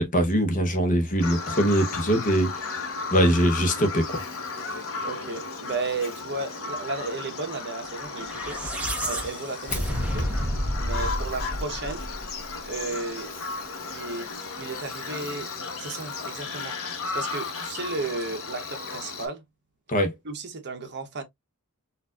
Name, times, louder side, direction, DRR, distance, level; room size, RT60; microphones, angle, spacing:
voice 1, 0.0-2.7 3.1-4.2 19.9-20.1, equal, 35° left, 0.8 m, -22 dB
Bird vocalization bird call bird song, 1.2-19.3, left 4 dB, 65° left, 1.0 m, -35 dB
voice 2, 5.0-8.6 9.0-10.3 10.8-12.1 12.7-13.3 13.8-14.3 14.6-15.5 15.8-16.8 17.1-19.4 20.2-21.2, right 3 dB, 50° right, 0.9 m, -34 dB
sound 1, 8.1-12.6, equal, 5° right, 0.9 m, -30 dB
4.3 x 2.5 x 2.3 m
head